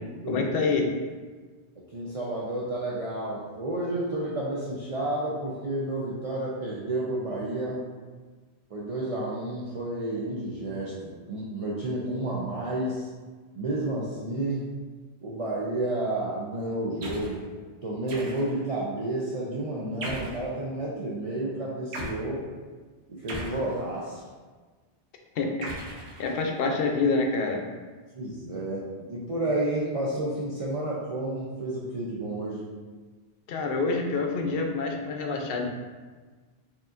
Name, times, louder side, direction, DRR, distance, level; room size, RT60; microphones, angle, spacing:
voice 1, 0.3-0.8 25.4-25.7 26.2-27.6 33.5-35.6, left 3 dB, 70° left, 2 dB, 0.7 m, -26 dB
voice 2, 1.9-7.9 8.7-13.1 13.5-14.7 15.2-17.5 17.8-22.5 23.1-24.2 28.1-32.6, right 1 dB, 45° right, -7 dB, 0.5 m, -31 dB
sound 1, 17.0-17.4 18.1-18.7 20.0-20.5 21.9-22.2 23.3-24.2 25.6-26.7, right 1 dB, 85° right, 1.0 m, -38 dB
4.7 x 2.9 x 2.5 m, 1.4 s
omnidirectional pair, 1.1 m